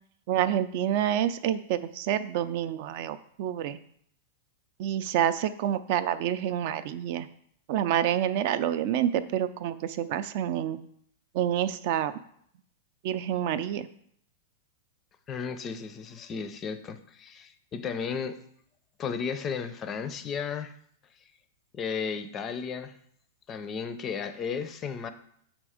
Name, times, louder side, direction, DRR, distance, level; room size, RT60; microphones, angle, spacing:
voice 1, 0.3-3.8 4.8-7.3 7.7-10.8 11.3-12.1 13.0-13.9, right 10 dB, 50° right, 12 dB, 0.4 m, -28 dB
voice 2, 15.3-18.4 19.0-20.7 21.7-22.9 23.5-25.1, left 6 dB, 25° left, 11 dB, 0.5 m, -34 dB
6.0 x 4.4 x 4.9 m, 0.66 s
supercardioid pair, 150°, 0 cm